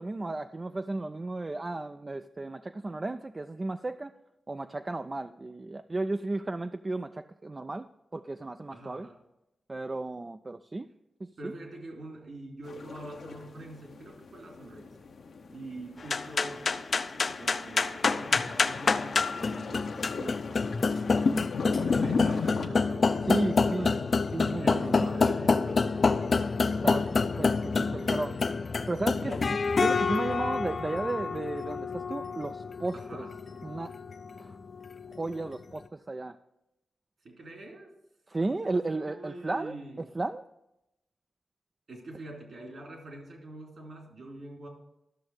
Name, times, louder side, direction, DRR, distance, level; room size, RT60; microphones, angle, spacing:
voice 1, 0.0-4.1 4.5-7.9 8.1-9.1 9.7-10.9 11.2-11.5 23.3-24.0 24.3-25.1 26.8-28.3 28.9-29.3 29.8-33.2 33.6-33.9 34.4-34.6 35.1-36.4 38.3-39.7 40.2-40.4, right 2 dB, 30° right, 9 dB, 0.3 m, -34 dB
voice 2, 8.7-9.2 11.4-15.1 15.5-20.4 20.8-21.3 21.7-24.1 24.6-27.2 27.7-28.6 29.2-29.5 30.2-30.4 32.9-33.4 37.2-37.9 38.4-40.0 41.9-44.7, right 1 dB, 65° right, 0 dB, 3.0 m, -45 dB
sound 1, 12.6-22.7, left 4 dB, 70° left, 0.8 m, -36 dB
sound 2, 16.0-35.5, left 4 dB, 50° left, 0.5 m, -28 dB
12.5 x 6.3 x 4.8 m, 0.89 s
cardioid pair, 85°, 0 cm